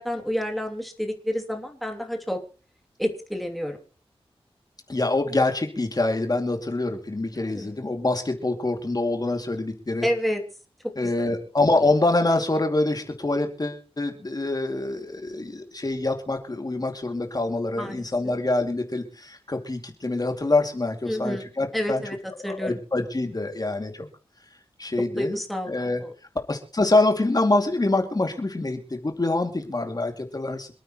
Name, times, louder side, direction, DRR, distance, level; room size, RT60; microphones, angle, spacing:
voice 1, 0.0-2.4 3.0-3.8 7.5-7.7 10.0-10.4 10.8-11.3 17.8-18.1 21.0-21.4 21.7-22.2 22.4-22.7 25.2-26.1, equal, ahead, 2 dB, 2.8 m, -29 dB
voice 2, 4.9-10.1 11.0-22.0 22.4-24.1 24.8-25.4 25.7-26.0 26.5-30.7, left 2 dB, 40° left, 4 dB, 2.5 m, -25 dB
27.0 x 9.1 x 3.1 m, 0.34 s
cardioid pair, 55°, 10 cm